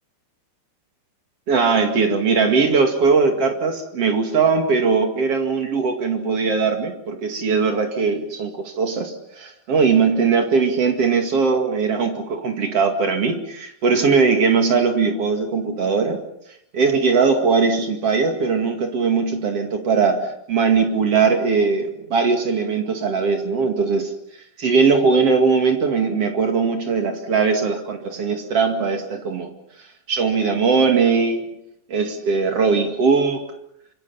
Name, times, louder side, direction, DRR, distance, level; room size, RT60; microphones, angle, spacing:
voice 1, 1.5-16.2 16.7-24.1 24.6-29.5 30.1-31.5 31.9-33.6, right 5 dB, 45° right, 5 dB, 2.4 m, -20 dB
26.0 x 25.0 x 5.7 m, 0.75 s
omnidirectional pair, 5.1 m